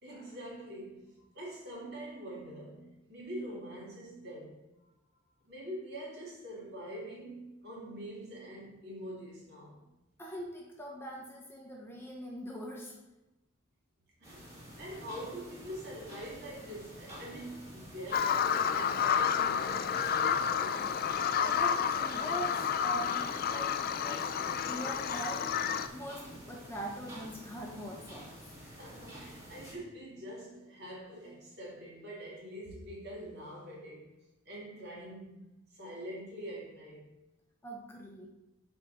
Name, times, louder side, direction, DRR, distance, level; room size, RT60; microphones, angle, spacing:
voice 1, 0.0-4.6 5.5-9.8 14.2-14.5 14.8-20.9 28.6-34.1 34.5-35.4 35.7-37.1, equal, 55° right, -5 dB, 2.2 m, -44 dB
voice 2, 10.2-12.9 21.4-24.3 24.6-28.3 37.6-38.3, right 1 dB, 10° left, -2 dB, 0.8 m, -42 dB
sound 1, 14.2-29.7, equal, 15° right, 1.8 m, -49 dB
Bird vocalization bird call bird song, 18.1-25.9, left 7 dB, 45° left, 0.3 m, -30 dB
6.4 x 4.7 x 3.9 m, 0.98 s
head